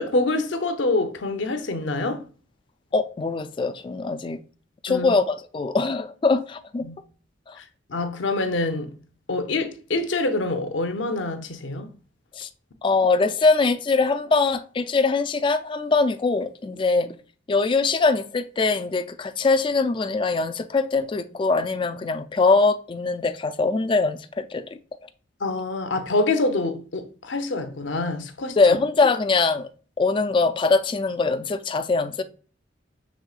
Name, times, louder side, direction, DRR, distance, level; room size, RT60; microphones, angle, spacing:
voice 1, 0.0-2.2 4.9-5.1 6.8-7.0 7.9-9.0 9.3-11.9 25.4-28.6, left 2 dB, 75° left, 0.7 m, -26 dB
voice 2, 2.9-4.4 4.8-6.9 7.5-7.6 12.4-12.5 12.8-17.1 17.5-24.6 28.6-29.7 30.0-32.2, left 3 dB, 25° left, 0.3 m, -22 dB
6.2 x 3.6 x 2.4 m
head